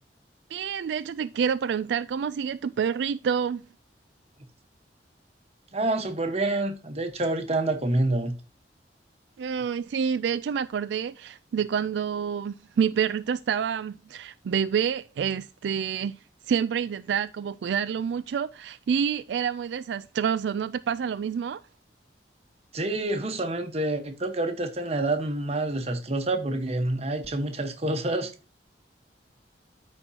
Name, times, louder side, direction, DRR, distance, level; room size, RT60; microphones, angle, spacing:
voice 1, 0.5-3.6 9.4-16.2 16.5-21.6, right 7 dB, 75° right, 0.3 m, -28 dB
voice 2, 5.7-8.3 22.7-28.3, right 2 dB, 35° right, 1.2 m, -27 dB
13.0 x 4.5 x 2.8 m
head